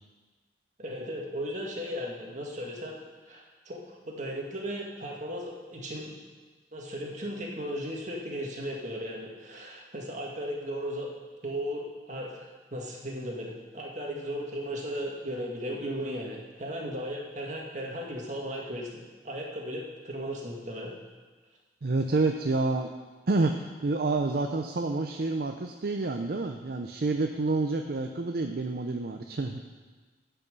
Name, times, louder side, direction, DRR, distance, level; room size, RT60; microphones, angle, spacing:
voice 1, 0.8-3.0 3.3-6.1 6.7-11.1 11.4-12.4 12.7-19.0 19.2-20.9, equal, 45° right, -1 dB, 1.9 m, -36 dB
voice 2, 21.8-22.9 23.3-29.6, right 3 dB, 60° right, 4 dB, 0.6 m, -28 dB
12.0 x 5.9 x 6.8 m, 1.3 s
head